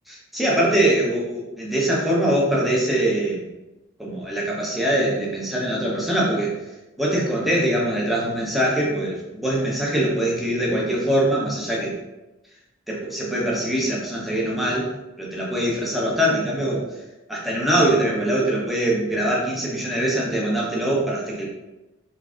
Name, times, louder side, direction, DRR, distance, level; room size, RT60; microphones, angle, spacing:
voice 1, 0.1-3.4 4.0-6.6 7.0-11.9 12.9-14.9 15.2-16.9 17.3-21.5, right 1 dB, ahead, -5 dB, 0.8 m, -23 dB
3.9 x 3.4 x 2.4 m, 1.0 s
head